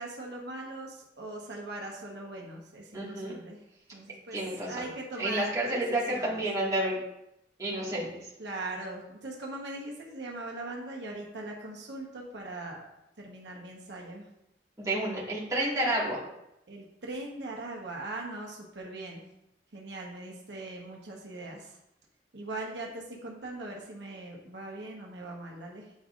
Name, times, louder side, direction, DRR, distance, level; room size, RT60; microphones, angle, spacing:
voice 1, 0.0-3.6 3.9-4.4 4.7-6.4 8.4-12.8 13.2-14.3 16.7-19.2 19.7-21.8 22.3-25.9, right 2 dB, 75° right, -1 dB, 1.1 m, -40 dB
voice 2, 2.9-3.4 4.3-4.9 5.2-7.0 7.6-8.3 14.8-16.2, right 1 dB, 20° right, -6 dB, 1.9 m, -30 dB
8.5 x 5.4 x 2.5 m, 0.84 s
head